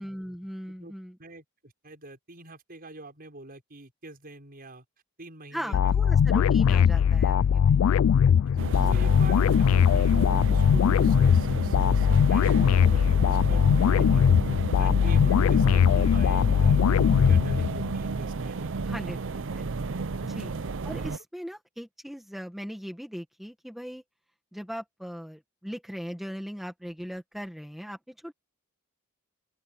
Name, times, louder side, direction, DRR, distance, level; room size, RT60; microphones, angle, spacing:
voice 1, 0.0-1.2 5.5-7.8 18.8-19.7 20.2-20.5 20.8-24.0 24.5-28.3, equal, ahead, 1.5 m, -39 dB
voice 2, 1.2-4.8 5.2-5.9 8.5-14.3 14.8-18.9 20.1-20.3, right 2 dB, 45° right, 6.1 m, -45 dB
sound 1, 5.7-18.0, left 8 dB, 70° left, 0.3 m, -21 dB
sound 2, 8.6-21.2, right 4 dB, 60° right, 0.6 m, -32 dB
open air
head